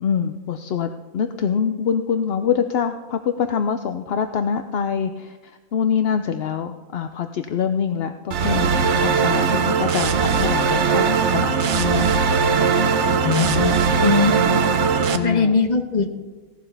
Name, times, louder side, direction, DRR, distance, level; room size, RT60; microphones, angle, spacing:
voice 1, 0.0-12.2 13.6-13.8 14.1-14.7 15.1-15.5, left 7 dB, 60° left, 8 dB, 0.7 m, -25 dB
sound 1, 8.3-15.2, right 5 dB, 60° right, 1.0 m, -19 dB
voice 2, 13.2-13.6 14.0-14.3 15.2-16.1, left 4 dB, 35° left, 5 dB, 1.1 m, -19 dB
16.5 x 11.5 x 3.4 m, 1.3 s
omnidirectional pair, 1.5 m